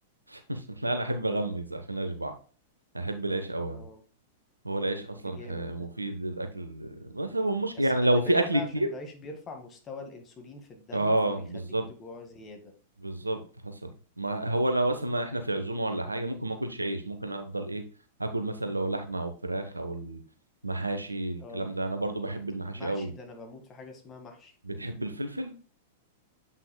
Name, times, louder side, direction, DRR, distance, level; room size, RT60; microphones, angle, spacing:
voice 1, 0.3-2.3 2.9-3.8 4.6-8.9 10.9-11.9 13.0-13.9 14.2-17.8 18.2-20.2 20.6-23.1 24.6-25.5, right 1 dB, 85° right, 7 dB, 1.0 m, -30 dB
voice 2, 3.7-4.0 5.2-5.9 7.7-11.2 11.5-12.7 21.4-21.7 22.6-24.5, left 3 dB, 25° left, 4 dB, 1.8 m, -44 dB
8.1 x 5.7 x 2.2 m, 0.39 s
figure-of-eight pair, 95°, 0 cm